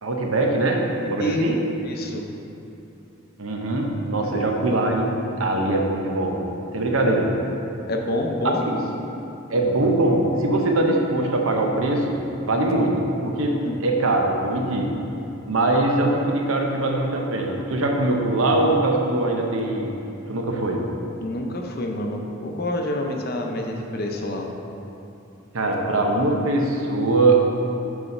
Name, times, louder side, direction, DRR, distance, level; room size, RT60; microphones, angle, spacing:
voice 1, 0.0-1.6 3.4-5.1 5.4-6.4 6.7-7.3 8.4-8.8 9.5-13.0 13.2-14.9 15.5-19.9 20.3-20.8 25.5-27.6, right 2 dB, 85° right, 1 dB, 0.8 m, -22 dB
voice 2, 1.2-1.5 1.9-2.3 4.3-4.4 7.0-7.1 7.9-8.6 13.6-13.8 21.2-24.5, left 1 dB, 50° left, 2 dB, 0.7 m, -27 dB
7.0 x 4.2 x 5.3 m, 2.8 s
head